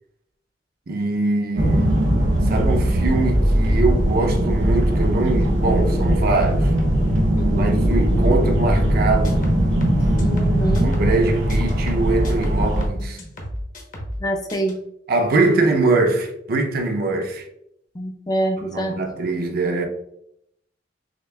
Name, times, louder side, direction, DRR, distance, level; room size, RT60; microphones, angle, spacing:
voice 1, 0.9-1.9 2.5-6.7 7.6-9.5 10.8-13.2 15.1-17.5 18.6-19.9, right 3 dB, 55° right, 0.6 m, -22 dB
sound 1, 1.5-12.9, equal, 80° right, 0.9 m, -19 dB
voice 2, 7.3-7.7 10.2-10.9 14.2-14.8 17.9-18.9, right 1 dB, 20° left, 0.5 m, -25 dB
sound 2, 8.9-11.2 11.5-14.2 14.5-14.7, equal, 45° left, 0.9 m, -32 dB
6.4 x 2.5 x 2.2 m
head